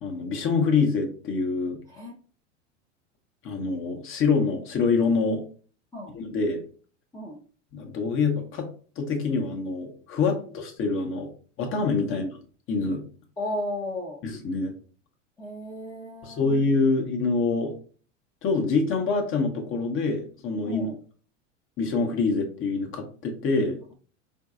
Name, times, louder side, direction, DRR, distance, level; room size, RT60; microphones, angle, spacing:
voice 1, 0.0-1.8 3.4-5.4 6.1-6.6 7.7-8.7 9.0-11.3 11.6-12.3 12.7-13.0 14.2-14.7 16.2-17.7 18.4-20.9 21.8-23.8, left 4 dB, 35° left, 3 dB, 0.8 m, -25 dB
voice 2, 13.4-14.2 15.4-16.6 20.6-21.0, left 1 dB, 10° left, -4 dB, 0.6 m, -34 dB
3.8 x 2.6 x 2.3 m, 0.42 s
hypercardioid pair, 95°, 37 cm